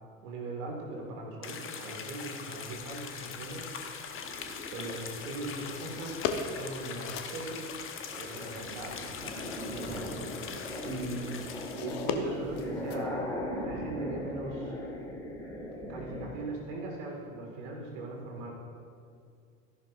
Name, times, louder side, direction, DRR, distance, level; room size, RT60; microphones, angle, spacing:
voice 1, 0.2-7.6 8.2-10.6 10.9-11.4 11.7-14.7 15.9-18.5, right 2 dB, 65° right, 0 dB, 2.0 m, -40 dB
sound 1, 1.4-11.8, left 6 dB, 30° left, 1.2 m, -42 dB
sound 2, 2.6-13.1, left 6 dB, 50° left, 1.0 m, -42 dB
sound 3, 4.1-6.1 6.7-7.1 7.5-16.3, left 1 dB, 10° left, 2.9 m, -39 dB
14.0 x 11.5 x 2.5 m, 2.2 s
figure-of-eight pair, 75°, 41 cm